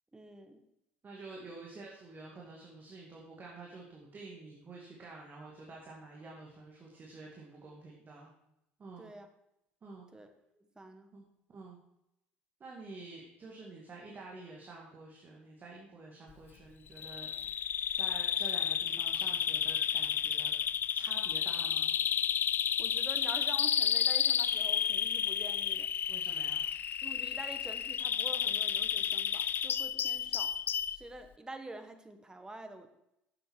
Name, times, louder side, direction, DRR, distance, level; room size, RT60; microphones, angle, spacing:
voice 1, 0.1-0.6 9.0-9.3 10.1-10.3 10.6-11.1 22.8-25.9 27.0-30.5 30.9-32.9, right 2 dB, 15° right, 7 dB, 1.3 m, -47 dB
voice 2, 1.0-8.3 8.8-9.1 9.8-10.1 11.1-11.8 12.6-17.6 17.9-20.5 20.9-21.9 26.1-26.7, right 3 dB, 35° right, -2 dB, 2.1 m, -49 dB
Bird vocalization bird call bird song, 17.0-31.0, left 9 dB, 40° left, 0.3 m, -31 dB
10.5 x 7.8 x 4.6 m, 0.85 s
figure-of-eight pair, 60°, 6 cm